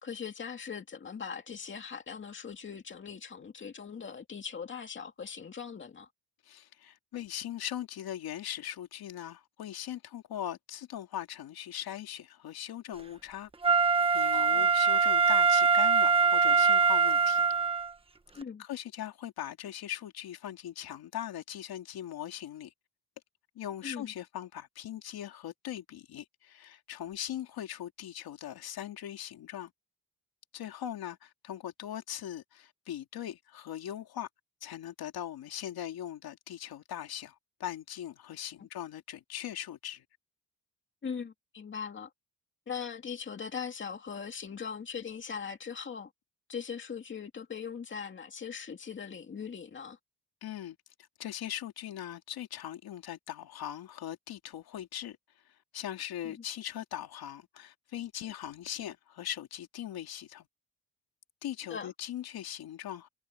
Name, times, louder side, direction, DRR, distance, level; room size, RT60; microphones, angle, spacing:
voice 1, 0.0-6.1 14.3-14.7 18.4-18.6 23.8-24.1 41.0-42.1 42.7-46.1 46.5-50.0 56.2-56.4 61.7-61.9, left 6 dB, 30° left, 2.4 m, -40 dB
voice 2, 6.4-13.5 14.1-17.5 18.6-22.7 23.5-29.7 30.5-34.3 34.6-37.3 37.6-40.0 50.4-50.8 51.2-55.2 55.5-60.5 61.4-63.1, left 11 dB, 85° left, 2.5 m, -40 dB
Wind instrument woodwind instrument, 13.6-17.9 18.4-18.5, right 5 dB, 15° right, 1.3 m, -23 dB
wide cardioid pair, 160°, 36 cm